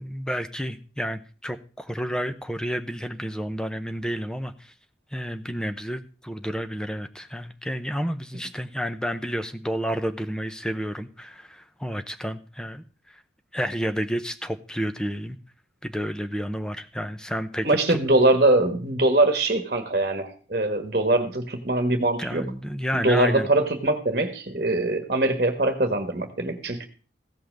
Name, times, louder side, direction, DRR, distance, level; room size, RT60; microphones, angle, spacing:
voice 1, 0.0-4.7 5.1-13.2 13.5-15.4 15.8-18.0 22.2-23.5, equal, 5° left, 9 dB, 0.7 m, -30 dB
voice 2, 17.6-22.4 22.9-26.9, right 2 dB, 45° right, 7 dB, 1.4 m, -22 dB
15.5 x 5.7 x 6.5 m, 0.37 s
head